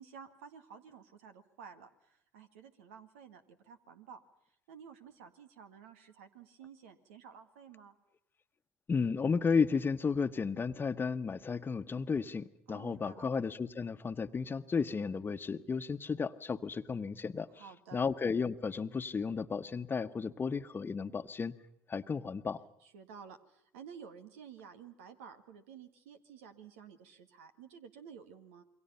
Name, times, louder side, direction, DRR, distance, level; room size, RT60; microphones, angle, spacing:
voice 1, 0.0-4.2 4.7-8.0 12.7-13.2 17.5-18.0 22.8-28.6, right 7 dB, 85° right, 8 dB, 1.9 m, -52 dB
voice 2, 8.9-17.5 17.9-21.5 21.9-22.6, left 5 dB, 30° left, 10 dB, 1.2 m, -33 dB
28.0 x 23.0 x 5.7 m, 0.74 s
hypercardioid pair, 70°, 7 cm